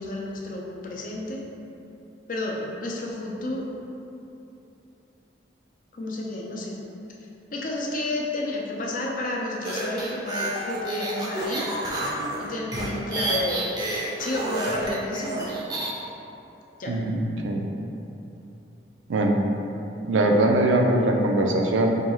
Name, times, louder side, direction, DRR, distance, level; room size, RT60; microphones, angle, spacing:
voice 1, 0.0-1.4 2.3-3.6 5.9-6.8 7.5-11.7 12.4-13.6 14.2-15.5 16.8-16.9, left 2 dB, 45° left, -2 dB, 0.5 m, -31 dB
sound 1, 9.6-15.9, right 1 dB, 20° right, 0.4 m, -29 dB
voice 2, 16.9-17.7 19.1-19.4 20.1-22.0, right 1 dB, 90° right, 2 dB, 0.4 m, -21 dB
5.0 x 2.3 x 3.0 m, 2.9 s
head